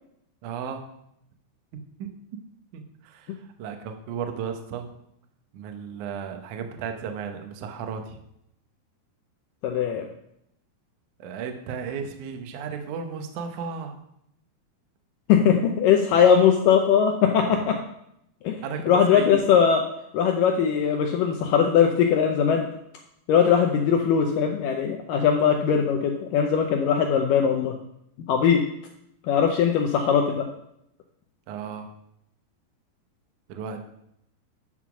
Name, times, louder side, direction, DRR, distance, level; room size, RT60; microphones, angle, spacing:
voice 1, 0.4-0.8 2.0-2.1 2.7-3.3 3.6-4.9 5.5-8.2 11.2-13.9 18.6-18.8 19.1-19.3 31.5-31.9 33.5-33.8, right 6 dB, 75° right, 5 dB, 1.8 m, -34 dB
voice 2, 9.6-10.1 15.3-17.8 18.4-18.6 18.9-19.8 20.1-22.7 23.3-27.7 28.3-28.7 29.3-30.4, left 7 dB, 85° left, 3 dB, 1.9 m, -20 dB
9.6 x 5.7 x 6.1 m, 0.77 s
omnidirectional pair, 4.8 m